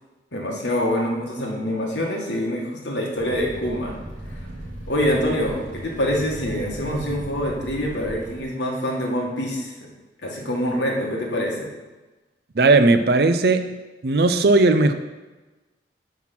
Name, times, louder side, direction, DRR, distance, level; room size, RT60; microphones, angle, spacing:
voice 1, 0.3-4.0 4.3-4.5 4.9-9.9 10.2-11.7, equal, 80° left, -1 dB, 1.6 m, -25 dB
Fire, 3.1-8.4, right 1 dB, 40° right, 2.4 m, -37 dB
voice 2, 12.5-13.7 14.0-14.9, right 3 dB, 60° right, 9 dB, 0.5 m, -17 dB
6.0 x 5.6 x 5.9 m, 1.2 s
head